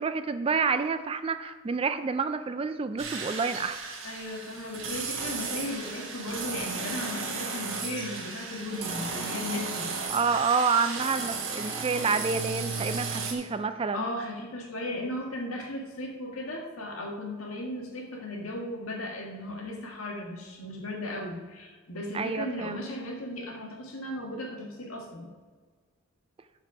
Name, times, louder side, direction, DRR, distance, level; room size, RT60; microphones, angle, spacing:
voice 1, 0.0-3.8 10.1-14.1 22.1-22.8, right 5 dB, 25° right, 11 dB, 0.3 m, -28 dB
sound 1, 3.0-13.3, right 4 dB, 60° right, 1.4 m, -35 dB
voice 2, 4.0-10.1 13.9-25.3, left 1 dB, 75° left, 0 dB, 1.8 m, -36 dB
12.0 x 4.7 x 4.8 m, 1.4 s
head